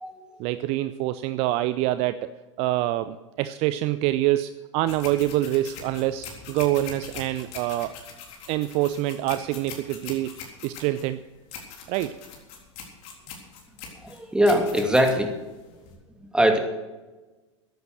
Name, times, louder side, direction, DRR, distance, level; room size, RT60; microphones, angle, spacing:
voice 1, 0.4-2.3 2.6-7.9 8.5-11.2 11.9-12.1, right 15 dB, 40° right, 13 dB, 0.6 m, -26 dB
sound 1, 4.8-16.0, left 6 dB, 45° left, 3.8 m, -42 dB
voice 2, 14.0-15.4 16.3-16.6, equal, 5° right, 4 dB, 2.5 m, -21 dB
14.5 x 11.0 x 6.3 m, 1.2 s
figure-of-eight pair, 90°, 16 cm